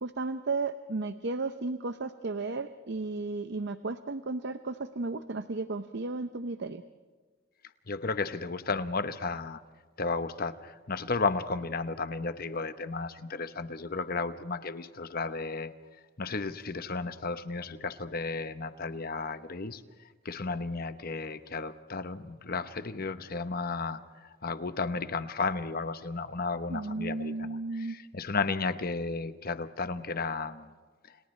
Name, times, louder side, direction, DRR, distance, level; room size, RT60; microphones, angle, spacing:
voice 1, 0.0-6.8 26.7-28.0, right 3 dB, 60° right, 10 dB, 0.7 m, -34 dB
voice 2, 7.9-9.6 10.0-15.7 16.2-19.8 20.2-30.7, left 4 dB, 50° left, 11 dB, 1.0 m, -33 dB
29.5 x 28.5 x 3.3 m, 1.5 s
head